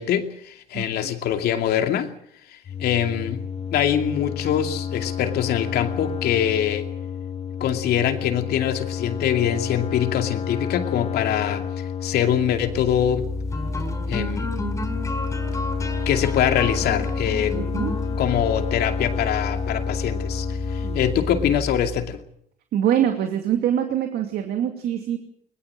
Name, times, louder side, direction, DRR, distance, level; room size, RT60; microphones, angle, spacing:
voice 1, 0.0-2.1 2.5-3.4 3.7-6.9 7.6-11.7 12.0-13.3 14.1-14.5 16.1-17.6 18.2-22.2, left 9 dB, 70° left, 6 dB, 2.5 m, -24 dB
sound 1, 2.7-21.6, left 8 dB, 35° left, 1.2 m, -31 dB
sound 2, 12.5-22.1, left 1 dB, 15° left, 5.2 m, -29 dB
voice 2, 17.5-17.9 20.8-21.0 22.7-25.2, right 10 dB, 70° right, 5 dB, 2.6 m, -24 dB
21.5 x 21.0 x 7.6 m, 0.68 s
cardioid pair, 110°, 17 cm